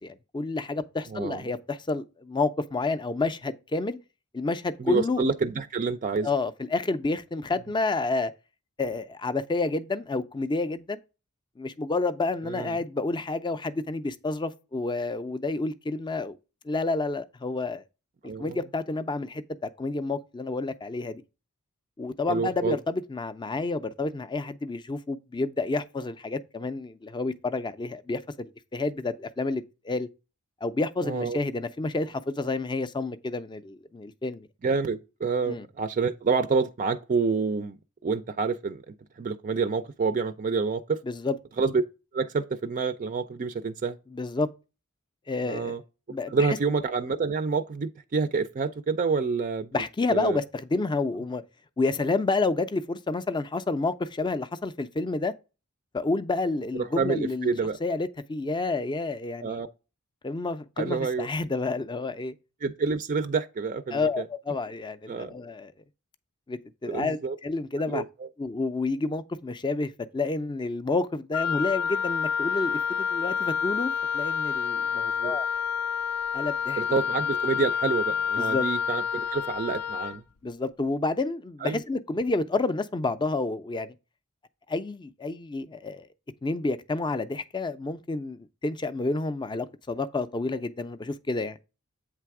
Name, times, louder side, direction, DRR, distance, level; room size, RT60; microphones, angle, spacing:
voice 1, 0.0-4.0 4.3-5.2 6.2-8.3 8.8-11.0 11.6-16.4 16.6-17.8 18.4-21.2 22.0-30.1 30.6-34.5 35.5-35.7 41.1-41.4 44.1-44.5 45.3-45.8 46.1-46.6 49.7-51.4 51.8-55.3 55.9-57.5 57.8-59.6 60.2-62.3 63.9-65.7 66.5-68.0 68.4-75.5 76.3-76.8 78.4-78.7 80.4-83.9 84.7-86.1 86.4-91.6, left 3 dB, 20° left, 0.5 m, -29 dB
voice 2, 1.1-1.4 4.8-6.3 12.4-12.8 18.2-18.6 22.3-22.8 31.0-31.4 34.6-38.8 39.2-41.0 41.6-41.8 42.1-44.0 45.5-45.8 46.3-49.8 50.1-50.4 56.7-57.8 59.4-59.7 60.8-61.3 62.6-64.3 65.1-65.3 66.8-67.4 67.9-68.3 75.0-75.4 76.8-80.2 81.6-81.8, right 4 dB, 35° right, 0.4 m, -28 dB
Wind instrument woodwind instrument, 71.3-80.2, left 7 dB, 90° left, 0.5 m, -28 dB
8.4 x 3.4 x 4.6 m
head